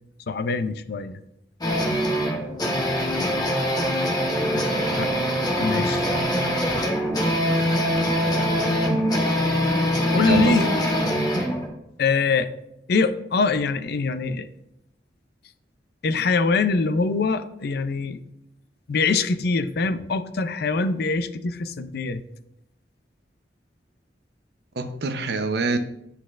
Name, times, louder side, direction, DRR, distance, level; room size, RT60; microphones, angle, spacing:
voice 1, 0.3-1.2 4.5-4.6 5.0-5.1 5.6-6.1 10.1-10.7 12.0-12.5 12.9-14.5 16.0-18.2 18.9-22.2, left 4 dB, 60° left, 0.5 m, -23 dB
sound 1, 1.6-11.7, equal, 25° left, 1.3 m, -23 dB
voice 2, 10.2-10.8 24.8-25.8, right 2 dB, 65° right, 0.7 m, -25 dB
11.0 x 4.1 x 2.5 m
head